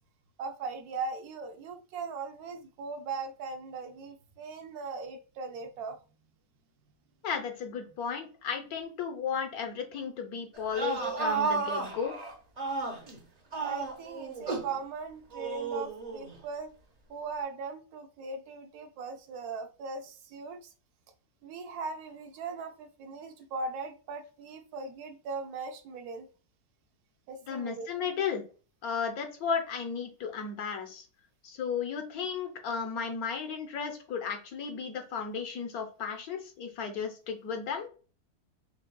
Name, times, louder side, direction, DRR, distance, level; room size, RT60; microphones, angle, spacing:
voice 1, 0.4-6.0 13.6-16.7 17.1-20.7 21.4-26.3 27.3-27.9, right 4 dB, 75° right, 6 dB, 1.1 m, -39 dB
voice 2, 7.2-12.1 27.5-28.4 28.8-31.0 31.4-37.9, left 6 dB, 70° left, 4 dB, 1.2 m, -34 dB
sound 1, 10.6-13.2 13.5-14.8 15.3-16.3, right 4 dB, 40° right, 0.6 m, -33 dB
6.0 x 2.3 x 2.2 m, 0.36 s
omnidirectional pair, 1.7 m